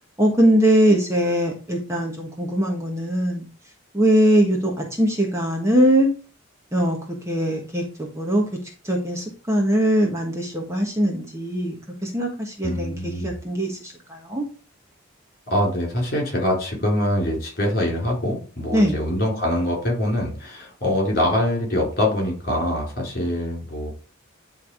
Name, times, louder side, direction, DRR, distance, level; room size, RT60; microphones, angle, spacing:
voice 1, 0.2-3.4 3.9-6.1 6.7-7.0 7.3-7.8 8.1-8.4 8.8-11.8 12.0-14.4 18.7-18.9, equal, 15° right, 0 dB, 1.3 m, -21 dB
voice 2, 12.6-13.3 15.5-23.9, left 1 dB, 45° left, -1 dB, 4.0 m, -24 dB
10.5 x 3.5 x 4.9 m, 0.37 s
head